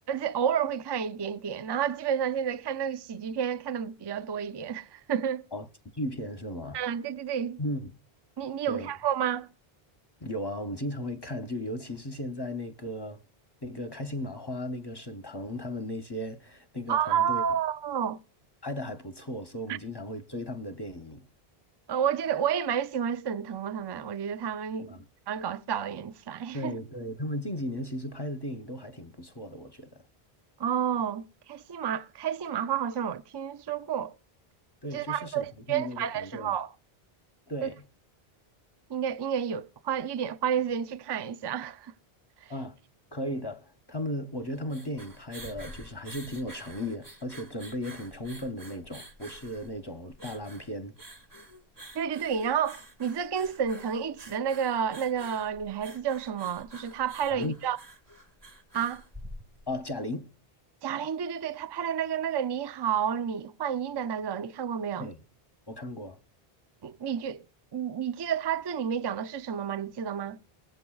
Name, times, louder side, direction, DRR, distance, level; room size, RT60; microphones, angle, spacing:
voice 1, 0.1-5.4 6.7-7.6 8.4-9.5 16.9-18.2 19.7-19.8 21.9-26.8 30.6-34.1 34.9-36.7 37.6-37.7 38.9-41.9 42.4-42.5 51.9-57.8 58.7-59.0 60.8-65.1 66.8-67.4 67.7-70.4, right 8 dB, 40° right, 0.3 m, -30 dB
voice 2, 5.9-6.8 7.6-7.9 8.7-8.9 10.2-13.2 13.6-17.4 18.6-21.3 24.8-25.0 26.5-30.0 34.8-36.5 37.5-37.8 42.5-42.7 43.1-51.0 57.3-57.6 59.7-60.3 65.0-65.2 65.7-66.2, left 1 dB, 30° left, 0.6 m, -36 dB
sound 1, 44.5-59.9, right 1 dB, 20° right, 1.1 m, -48 dB
21.5 x 7.8 x 2.3 m
omnidirectional pair, 1.0 m